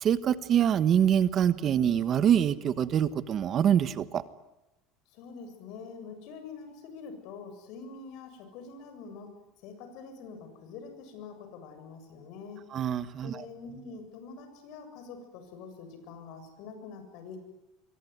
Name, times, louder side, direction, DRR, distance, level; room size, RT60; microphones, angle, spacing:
voice 1, 0.0-4.2 12.7-13.4, right 9 dB, 40° right, 14 dB, 1.3 m, -25 dB
voice 2, 5.1-9.3 9.6-12.6 13.2-17.7, left 5 dB, 65° left, 7 dB, 7.4 m, -45 dB
26.5 x 23.5 x 9.7 m, 0.91 s
supercardioid pair, 130°, 0 cm